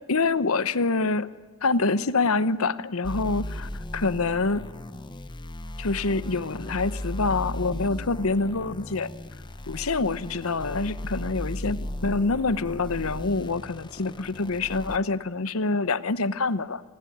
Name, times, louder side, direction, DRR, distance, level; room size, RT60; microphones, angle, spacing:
voice 1, 0.0-1.3 1.6-4.7 5.8-9.1 9.7-16.8, left 3 dB, 70° left, 15 dB, 0.9 m, -26 dB
sound 1, 3.0-15.0, left 1 dB, 20° left, 0.9 m, -36 dB
28.0 x 20.5 x 10.0 m, 1.3 s
head